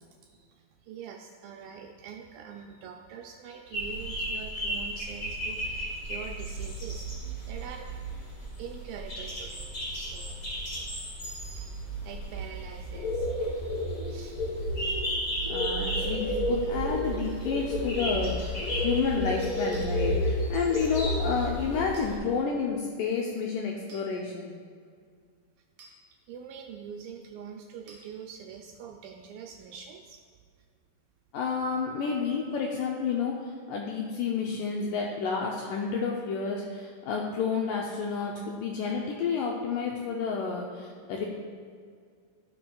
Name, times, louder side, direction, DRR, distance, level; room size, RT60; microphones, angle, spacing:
voice 1, 0.0-7.1 7.5-7.9 8.6-10.7 11.6-13.3 14.1-15.0 17.0-17.1 19.2-19.4 26.3-30.2 31.6-32.0, right 7 dB, 85° right, 2 dB, 2.0 m, -44 dB
sound 1, 3.7-22.2, equal, 30° left, 1.5 m, -32 dB
voice 2, 15.5-24.5 31.3-41.3, left 5 dB, 85° left, -1 dB, 1.9 m, -30 dB
sound 2, 19.7-19.9 21.9-22.1 23.9-24.1 25.8-26.0 27.9-28.1, right 2 dB, 55° right, 2.2 m, -51 dB
16.0 x 6.0 x 2.3 m, 2.1 s
omnidirectional pair, 4.4 m